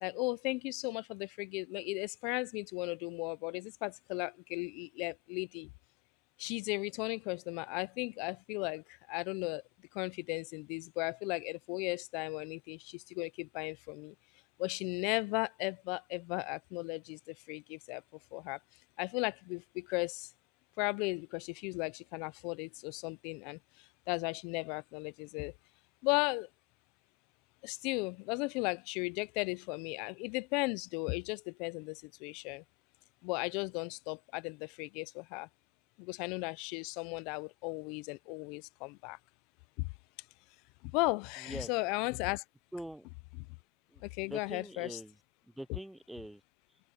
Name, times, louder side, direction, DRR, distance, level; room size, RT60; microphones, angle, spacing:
voice 1, 0.0-5.7 6.4-9.6 9.9-14.1 14.6-18.0 18.3-18.6 19.0-20.3 20.8-23.6 24.1-25.5 26.0-26.5 27.6-32.6 33.2-35.5 36.0-39.2 39.8-39.9 40.9-42.4 44.0-45.0, left 27 dB, 60° left, 0.4 m, -36 dB
voice 2, 41.4-42.0 42.7-43.1 43.9-45.2 45.5-46.4, right 1 dB, 5° right, 0.6 m, -44 dB
open air
supercardioid pair, 140°, 0 cm